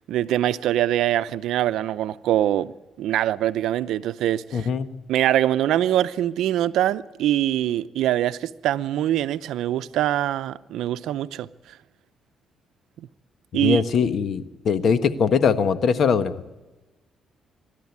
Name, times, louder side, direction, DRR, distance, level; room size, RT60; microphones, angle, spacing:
voice 1, 0.1-4.7 5.1-11.5 13.5-13.8, right 12 dB, 85° right, 0.6 m, -23 dB
voice 2, 4.5-4.9 13.5-16.3, left 6 dB, 60° left, 1.4 m, -21 dB
24.5 x 12.5 x 9.6 m
cardioid pair, 90°, 0 cm